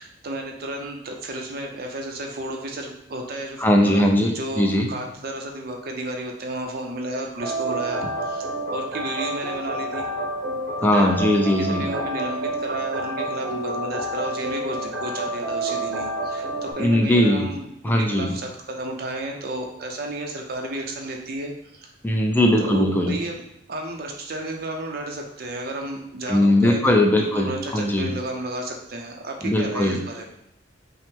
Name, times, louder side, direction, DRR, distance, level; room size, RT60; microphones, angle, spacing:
voice 1, 0.0-10.1 10.8-21.9 22.6-23.4 23.7-30.2, right 1 dB, 55° right, 1 dB, 0.6 m, -32 dB
voice 2, 3.6-4.9 10.8-11.9 16.8-17.5 17.8-18.3 22.0-23.2 26.3-28.1 29.4-30.0, left 1 dB, 10° left, 1 dB, 0.5 m, -19 dB
sound 1, 7.4-16.7, right 1 dB, 80° right, 1.0 m, -29 dB
5.4 x 2.0 x 3.6 m, 0.81 s
head